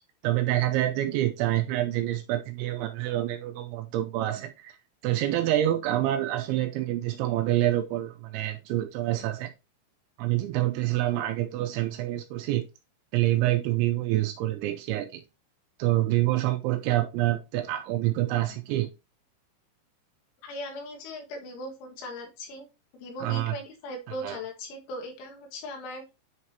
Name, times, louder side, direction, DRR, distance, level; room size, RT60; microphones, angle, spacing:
voice 1, 0.2-4.8 5.0-9.5 10.2-12.7 13.1-15.2 15.8-18.9 23.2-23.6 24.2-24.4, right 14 dB, 85° right, 2.8 m, -27 dB
voice 2, 20.4-22.7 22.9-26.0, left 1 dB, 75° left, 4.1 m, -39 dB
10.0 x 4.9 x 2.8 m
omnidirectional pair, 5.7 m